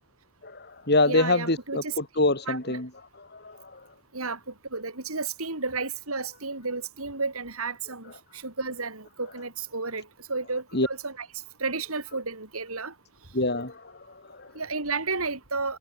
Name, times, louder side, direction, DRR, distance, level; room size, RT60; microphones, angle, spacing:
voice 1, 0.4-3.9 8.0-8.1 10.7-10.9 13.3-14.6, left 2 dB, 50° left, 5.3 m, -26 dB
voice 2, 1.1-1.9 2.5-2.8 4.1-4.4 4.7-11.3 11.6-12.9 14.5-15.8, right 4 dB, 75° right, 5.1 m, -32 dB
head